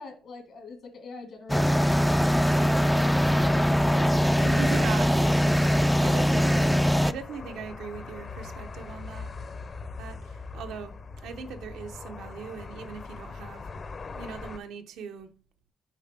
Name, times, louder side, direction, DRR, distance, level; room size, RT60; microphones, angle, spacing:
voice 1, 0.0-4.5, left 4 dB, 65° left, 1.7 m, -43 dB
sound 1, 1.5-7.1, equal, 5° left, 0.4 m, -22 dB
sound 2, 3.2-14.6, left 4 dB, 40° left, 0.7 m, -40 dB
voice 2, 4.4-9.4 10.0-13.7 14.1-15.3, right 6 dB, 85° right, 1.0 m, -39 dB
7.2 x 5.1 x 3.5 m
cardioid pair, 90°, 0 cm